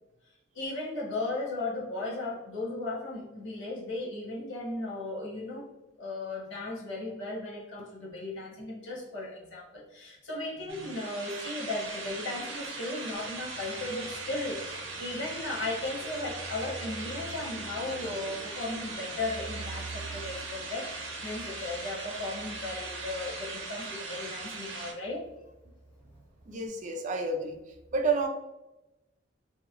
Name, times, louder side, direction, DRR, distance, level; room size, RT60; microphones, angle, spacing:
voice 1, 0.5-5.7 6.0-25.2, left 2 dB, 70° left, -4 dB, 1.0 m, -36 dB
sound 1, 10.7-24.9, right 3 dB, 90° right, 0.8 m, -39 dB
Fixed-wing aircraft airplane, 13.1-26.7, right 2 dB, 10° left, 0.7 m, -48 dB
voice 2, 26.5-27.6 27.9-28.3, right 3 dB, 40° right, 3 dB, 0.4 m, -30 dB
3.0 x 2.7 x 2.4 m, 0.98 s
head